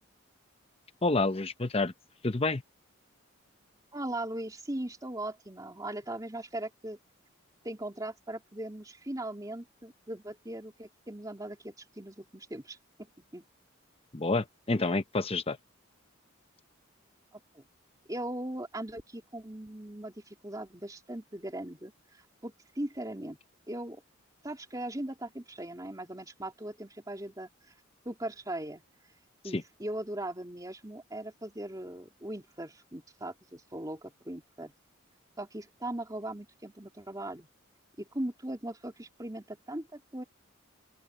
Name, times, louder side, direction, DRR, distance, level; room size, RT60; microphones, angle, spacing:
voice 1, 1.0-1.9 2.2-2.6 14.1-15.6 29.5-29.6, left 3 dB, 30° left, 0.8 m, -28 dB
voice 2, 3.9-7.0 7.6-13.4 17.5-17.6 18.1-23.4 23.7-24.0 24.4-27.5 28.0-28.8 29.4-34.7 35.4-37.5 38.0-40.2, right 1 dB, 15° right, 3.3 m, -39 dB
open air
head